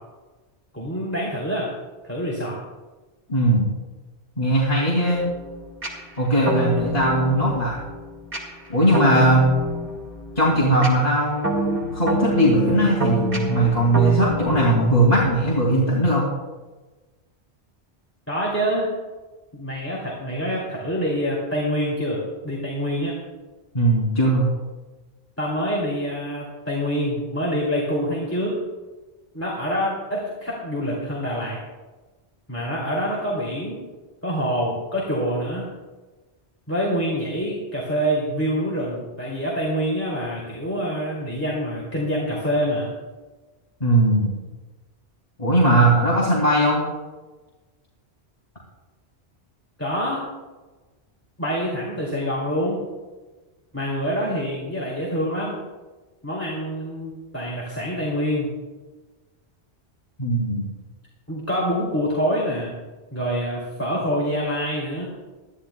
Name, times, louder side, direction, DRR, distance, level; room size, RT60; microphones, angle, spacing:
voice 1, 0.7-1.7 2.0-2.6 18.3-18.9 19.5-23.1 25.4-28.6 29.3-31.6 32.5-33.8 34.2-35.7 36.7-42.9 49.8-50.2 51.4-52.8 53.7-55.6 56.2-58.5 61.3-62.7 63.1-65.1, equal, 10° left, -4 dB, 2.8 m, -26 dB
voice 2, 3.3-3.7 4.4-5.3 6.2-7.8 8.7-9.5 10.4-16.3 23.7-24.5 43.8-44.3 45.4-46.8 60.2-60.7, right 1 dB, 35° left, -5 dB, 2.8 m, -19 dB
sound 1, 5.1-15.7, right 1 dB, 55° right, 2.4 m, -28 dB
21.5 x 13.5 x 2.3 m, 1.2 s
omnidirectional pair, 1.1 m